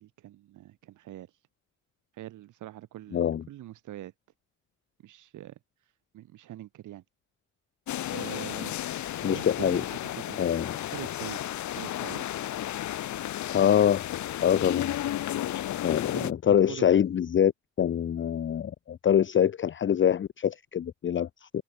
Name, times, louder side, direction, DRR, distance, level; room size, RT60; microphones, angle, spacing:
voice 1, 0.0-1.4 2.1-4.1 5.0-5.6 6.1-7.0 8.1-8.8 9.2-10.4 10.9-11.4 11.7-12.5 16.1-16.8, right 14 dB, 80° right, 2.7 m, -43 dB
voice 2, 3.1-3.4 9.2-9.8 10.4-10.7 13.5-14.1 14.4-14.9 15.8-17.5 17.8-21.5, left 9 dB, 40° left, 0.7 m, -24 dB
sound 1, 7.9-16.3, left 13 dB, 70° left, 1.3 m, -33 dB
cardioid pair, 90°, 30 cm